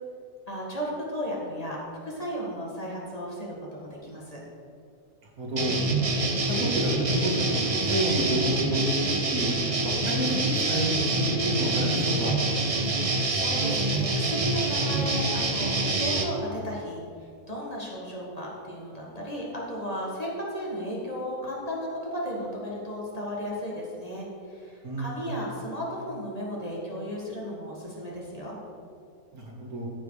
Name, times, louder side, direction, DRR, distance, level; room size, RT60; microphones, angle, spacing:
voice 1, 0.5-4.4 12.9-17.0 17.5-28.6, equal, 25° left, -4 dB, 1.8 m, -35 dB
voice 2, 5.4-5.8 6.4-9.5 9.8-12.3 24.8-25.2 29.3-29.9, right 1 dB, 80° right, -2 dB, 2.2 m, -29 dB
sound 1, 5.6-16.2, right 2 dB, 35° right, 0.6 m, -26 dB
14.0 x 5.0 x 4.9 m, 2.4 s
omnidirectional pair, 1.5 m